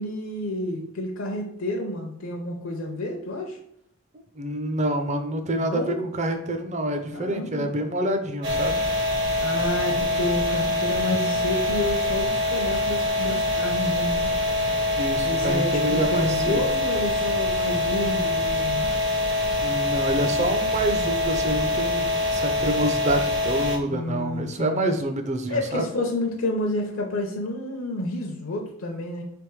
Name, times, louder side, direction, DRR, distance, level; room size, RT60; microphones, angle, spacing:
voice 1, 0.0-3.6 5.6-6.1 7.1-7.7 9.4-14.3 15.2-18.9 23.9-24.9 25.5-29.2, left 1 dB, 75° left, 1 dB, 0.6 m, -30 dB
voice 2, 4.4-8.8 14.9-16.6 19.6-25.9, right 1 dB, 35° right, 7 dB, 0.5 m, -27 dB
sound 1, 8.4-23.8, left 2 dB, 55° right, 1.1 m, -24 dB
sound 2, 11.1-13.5, right 2 dB, 25° left, 0.4 m, -41 dB
3.4 x 3.4 x 4.6 m, 0.74 s
head